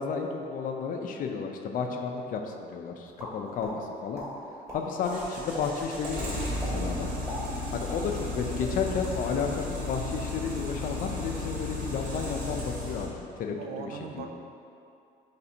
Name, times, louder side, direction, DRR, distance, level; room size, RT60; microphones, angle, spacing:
voice 1, 0.0-4.2 4.7-7.1 7.7-14.3, left 5 dB, 55° left, 3 dB, 0.4 m, -32 dB
sound 1, 3.2-3.7 4.1-4.3 4.7-5.2 5.5-5.6 6.0-6.1 6.6-6.7 7.1-8.3 8.6-8.7 9.1-9.4, equal, 20° right, 1.0 m, -39 dB
sound 2, 5.0-13.1, left 2 dB, 50° right, 1.0 m, -34 dB
voice 2, 13.5-14.3, right 6 dB, 75° right, 4 dB, 0.4 m, -40 dB
3.3 x 2.7 x 4.2 m, 2.6 s
cardioid pair, 110°, 17 cm